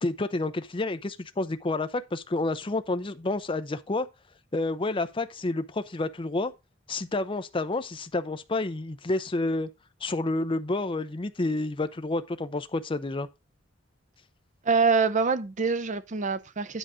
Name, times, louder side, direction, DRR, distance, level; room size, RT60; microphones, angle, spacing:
voice 1, 0.0-4.1 4.5-6.5 6.9-9.7 10.0-13.3, left 2 dB, 25° left, 0.6 m, -29 dB
voice 2, 14.7-16.8, right 4 dB, 40° right, 0.6 m, -25 dB
10.0 x 4.0 x 4.9 m
head